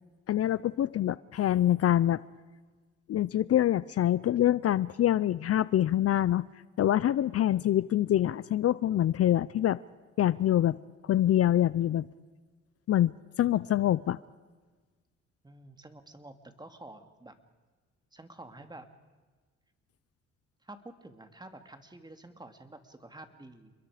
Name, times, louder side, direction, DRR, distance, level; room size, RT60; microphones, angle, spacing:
voice 1, 0.3-2.2 3.1-6.5 6.8-9.8 10.2-10.8 11.0-12.1 12.9-14.2, left 12 dB, 50° left, 19 dB, 0.6 m, -25 dB
voice 2, 7.5-7.8 15.4-17.4 18.1-18.9 20.6-23.7, right 2 dB, 15° right, 7 dB, 2.4 m, -49 dB
29.0 x 22.0 x 5.0 m, 1.3 s
cardioid pair, 90°, 30 cm